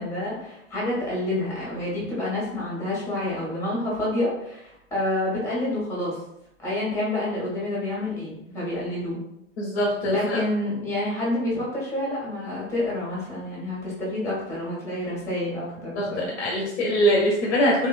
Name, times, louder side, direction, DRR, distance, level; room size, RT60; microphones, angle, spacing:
voice 1, 0.0-6.1 6.6-9.2 10.1-16.3, left 1 dB, 5° left, -6 dB, 1.3 m, -28 dB
voice 2, 9.6-10.4 15.9-17.9, equal, 55° left, -2 dB, 0.7 m, -23 dB
3.0 x 2.5 x 2.4 m, 0.81 s
figure-of-eight pair, 100°, 39 cm